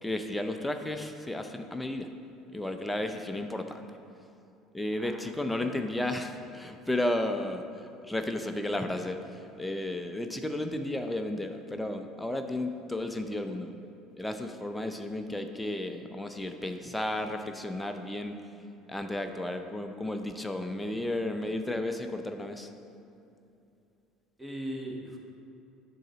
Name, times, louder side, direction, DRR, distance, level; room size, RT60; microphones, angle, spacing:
voice 1, 0.0-2.1 2.5-3.9 4.7-13.7 14.2-18.3 18.9-22.7, left 1 dB, 10° left, 6 dB, 0.6 m, -33 dB
voice 2, 24.4-25.2, equal, 10° right, 0 dB, 1.3 m, -38 dB
7.6 x 3.9 x 6.1 m, 2.8 s
hypercardioid pair, 70°, 0 cm